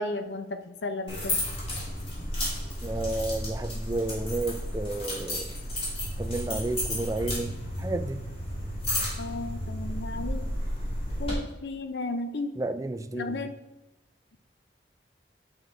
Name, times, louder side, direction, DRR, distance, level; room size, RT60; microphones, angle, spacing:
voice 1, 0.0-1.4 9.2-10.5 11.2-12.6 13.1-13.5, left 2 dB, 75° left, 0.6 m, -34 dB
sound 1, 1.1-11.3, left 1 dB, 30° left, 2.8 m, -32 dB
voice 2, 2.8-5.5 6.2-7.5 7.8-8.2 12.6-13.5, right 2 dB, 20° right, 0.4 m, -31 dB
10.0 x 3.9 x 4.4 m
head